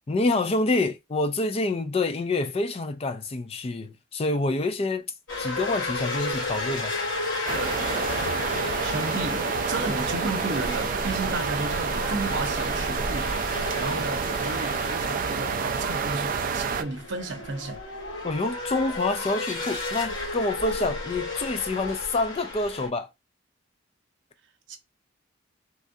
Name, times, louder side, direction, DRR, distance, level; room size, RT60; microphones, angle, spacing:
voice 1, 0.1-5.1 5.4-7.0 18.2-23.1, left 2 dB, 30° left, 0.4 m, -27 dB
sound 1, 5.3-22.9, left 2 dB, 70° left, 2.0 m, -33 dB
sound 2, 7.5-16.8, right 5 dB, 45° right, 0.3 m, -29 dB
voice 2, 8.8-13.3 13.8-17.8 24.7-24.8, right 3 dB, 65° right, 0.7 m, -33 dB
3.3 x 2.4 x 2.6 m
head